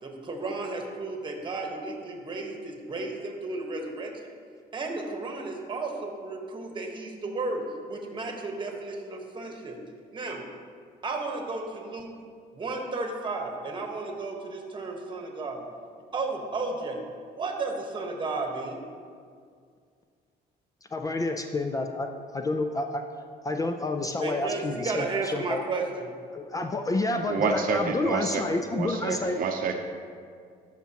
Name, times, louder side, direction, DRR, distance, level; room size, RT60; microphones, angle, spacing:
voice 1, 0.0-4.4 4.7-9.8 10.1-10.4 11.0-12.1 12.5-15.6 16.1-17.0 17.3-18.8 24.2-26.1, right 3 dB, 30° right, 2 dB, 1.3 m, -33 dB
voice 2, 20.9-23.0 23.4-25.6 26.3-29.4, left 2 dB, 20° left, 5 dB, 0.4 m, -29 dB
voice 3, 27.2-29.8, right 5 dB, 55° right, 4 dB, 0.7 m, -29 dB
13.0 x 5.8 x 2.9 m, 2.1 s
cardioid pair, 110°, 17 cm